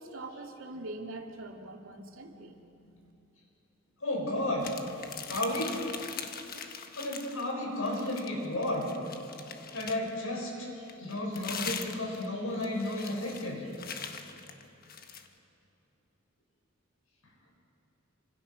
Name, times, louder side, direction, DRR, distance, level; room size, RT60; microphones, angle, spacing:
voice 1, 0.0-3.1, right 2 dB, 70° right, 2 dB, 2.5 m, -43 dB
voice 2, 4.0-4.8 5.3-5.8 7.0-8.9 9.7-10.7 11.0-13.6, left 1 dB, 85° left, -1 dB, 6.9 m, -32 dB
sound 1, 4.6-7.5 7.8-10.2 10.9-15.3, left 6 dB, 45° left, 1.4 m, -42 dB
28.0 x 26.0 x 6.4 m, 2.9 s
head